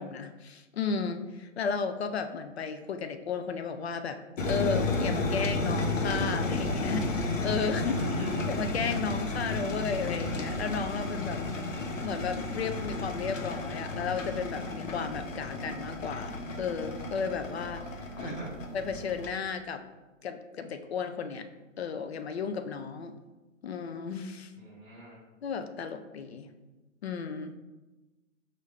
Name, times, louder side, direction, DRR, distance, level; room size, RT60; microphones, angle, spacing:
voice 1, 0.0-8.0 8.5-11.4 12.0-18.4 18.7-19.8 20.2-21.5 21.8-23.1 23.6-24.5 25.4-26.5 27.0-27.6, left 5 dB, 55° left, 7 dB, 0.5 m, -34 dB
sound 1, 4.4-19.3, left 2 dB, 70° left, 0.9 m, -32 dB
voice 2, 7.7-8.5 18.2-18.6 24.6-25.2, right 2 dB, 15° right, -5 dB, 1.0 m, -39 dB
5.3 x 2.6 x 3.3 m, 1.1 s
figure-of-eight pair, 135°, 40 cm